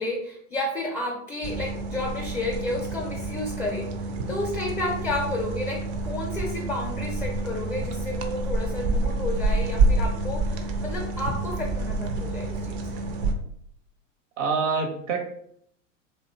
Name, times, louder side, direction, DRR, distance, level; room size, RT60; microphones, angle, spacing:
voice 1, 0.0-3.9 4.3-12.9, left 2 dB, 10° left, -1 dB, 0.5 m, -31 dB
sound 1, 1.4-13.3, right 2 dB, 45° right, 0.4 m, -28 dB
voice 2, 14.4-15.2, right 5 dB, 70° right, 3 dB, 0.8 m, -25 dB
2.6 x 2.1 x 2.7 m, 0.68 s
hypercardioid pair, 95°, 39 cm